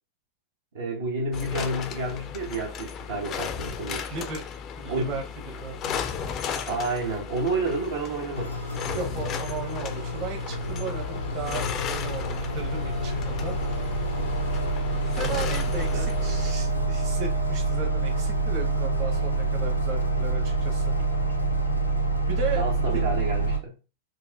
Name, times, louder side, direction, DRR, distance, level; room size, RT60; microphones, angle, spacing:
voice 1, 0.7-4.1 4.9-5.2 6.7-8.6 15.9-16.1 22.5-23.8, right 2 dB, 60° right, 1.0 m, -30 dB
sound 1, 1.3-16.5, left 7 dB, 35° left, 0.5 m, -35 dB
voice 2, 4.1-4.4 4.8-6.6 8.9-13.6 15.1-20.9 22.3-22.7 22.9-23.0, right 4 dB, 40° right, 1.2 m, -36 dB
sound 2, 8.3-23.6, right 2 dB, 85° left, 0.6 m, -27 dB
4.4 x 2.5 x 2.6 m
figure-of-eight pair, 90°, 0 cm